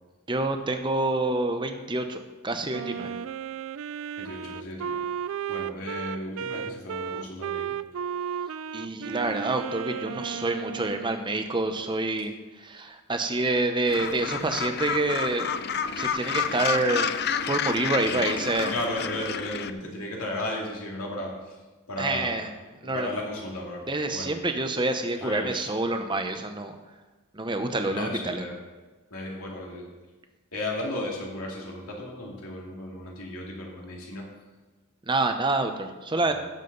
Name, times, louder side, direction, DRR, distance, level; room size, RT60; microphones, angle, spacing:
voice 1, 0.3-3.1 8.7-12.3 12.6-15.5 15.9-17.1 17.5-18.7 22.0-22.5 22.8-23.1 23.9-26.7 27.3-28.4 35.1-36.4, right 2 dB, 20° right, 6 dB, 0.8 m, -27 dB
Wind instrument woodwind instrument, 2.7-11.2, right 7 dB, 70° right, 0.3 m, -34 dB
voice 2, 4.2-5.0 5.5-7.7 18.0-18.2 18.7-21.6 21.9-22.4 22.8-23.8 24.1-24.3 25.2-25.7 27.9-28.6 29.1-29.9 30.5-34.3 36.2-36.4, left 1 dB, 80° left, -2 dB, 2.5 m, -34 dB
Gull seagull, 13.9-19.7, left 7 dB, 45° left, 0.5 m, -30 dB
16.5 x 7.3 x 4.0 m, 1.2 s
head